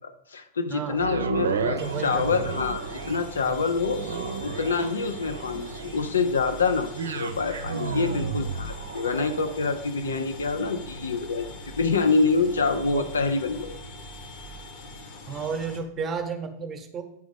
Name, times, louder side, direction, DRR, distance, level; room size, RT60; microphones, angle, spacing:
voice 1, 0.0-13.8, left 4 dB, 70° left, 7 dB, 0.6 m, -26 dB
voice 2, 0.7-1.0 1.6-2.5 3.5-3.6 10.0-10.2 12.9-13.1 15.3-17.0, right 6 dB, 20° right, 6 dB, 0.9 m, -33 dB
sound 1, 0.9-15.1 15.6-15.7, right 4 dB, 70° right, 0.5 m, -34 dB
sound 2, 1.8-15.8, left 2 dB, 45° left, 1.3 m, -43 dB
9.2 x 4.0 x 5.1 m, 0.79 s
figure-of-eight pair, 90°, 0 cm